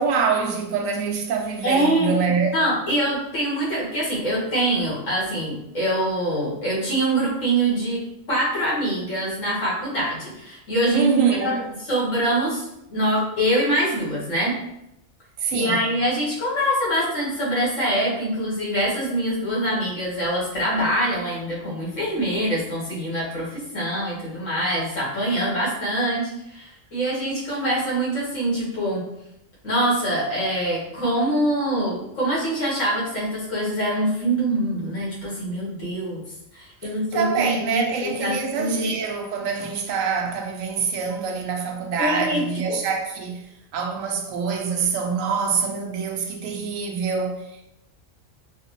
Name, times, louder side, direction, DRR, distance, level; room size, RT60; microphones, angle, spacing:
voice 1, 0.0-2.5 10.9-11.7 15.4-15.8 37.1-43.4 43.7-47.4, right 5 dB, 85° right, 1.0 m, -25 dB
voice 2, 1.6-2.1 2.5-14.6 15.5-29.1 29.6-36.2 36.5-38.9 42.0-42.8, right 1 dB, 70° left, 1.7 m, -24 dB
4.2 x 2.0 x 2.9 m
omnidirectional pair, 1.4 m